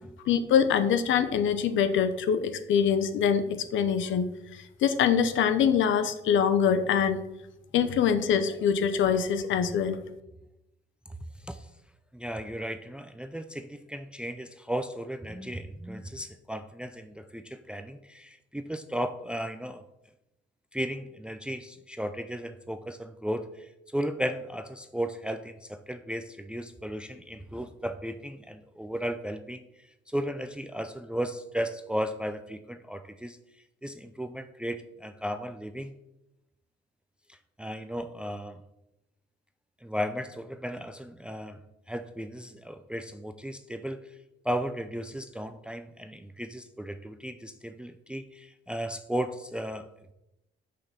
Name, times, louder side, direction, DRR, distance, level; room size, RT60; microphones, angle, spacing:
voice 1, 0.3-7.2 7.7-10.0, left 7 dB, 75° left, 11 dB, 0.9 m, -24 dB
voice 2, 12.1-19.8 20.7-29.6 30.1-33.4 33.8-35.9 37.3-38.6 39.8-41.6 41.9-44.0 44.4-50.1, equal, 5° right, 10 dB, 0.5 m, -35 dB
7.0 x 5.9 x 6.8 m, 0.90 s
cardioid pair, 90°, 20 cm